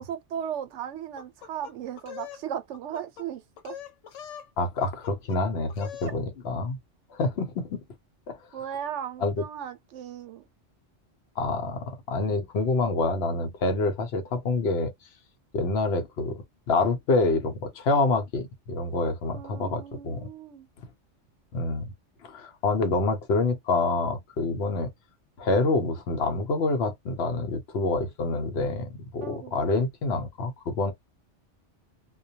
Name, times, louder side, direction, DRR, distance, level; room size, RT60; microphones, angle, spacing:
voice 1, 0.0-3.7 6.0-6.1 8.5-10.4 19.3-20.7 29.2-29.5, right 9 dB, 80° right, 0.9 m, -36 dB
sound 1, 1.2-2.4 2.7-3.3 3.6-4.5 4.8-5.4 5.7-6.2, left 9 dB, 85° left, 1.0 m, -42 dB
voice 2, 4.6-6.8 7.1-7.8 8.3-8.4 9.2-9.3 11.4-14.9 15.5-16.4 16.7-20.3 21.5-21.9 22.2-24.9 25.4-30.9, left 3 dB, 65° left, 0.9 m, -27 dB
2.2 x 2.2 x 2.7 m
omnidirectional pair, 1.2 m